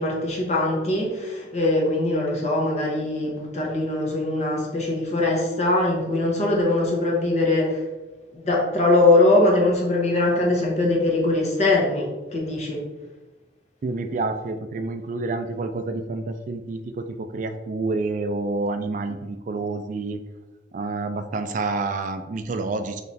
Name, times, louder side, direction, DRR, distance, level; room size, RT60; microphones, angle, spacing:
voice 1, 0.0-7.8 8.3-12.8, left 2 dB, 40° left, -2 dB, 1.1 m, -22 dB
voice 2, 13.8-20.2 20.7-23.0, right 3 dB, 45° right, 8 dB, 0.3 m, -28 dB
3.9 x 3.2 x 4.1 m, 1.1 s
head